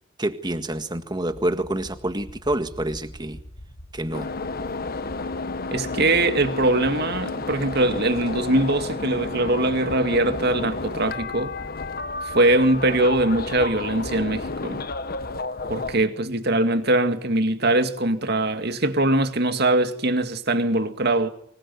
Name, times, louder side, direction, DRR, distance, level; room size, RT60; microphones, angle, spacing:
voice 1, 0.2-3.4 3.9-4.3, right 1 dB, 20° right, 1.8 m, -27 dB
sound 1, 1.3-15.4, equal, 85° left, 5.3 m, -43 dB
sound 2, 4.1-16.1, left 3 dB, 50° left, 1.3 m, -31 dB
voice 2, 5.7-11.6 12.2-14.8 15.7-21.3, right 2 dB, 55° right, 2.1 m, -22 dB
25.0 x 21.0 x 9.5 m
head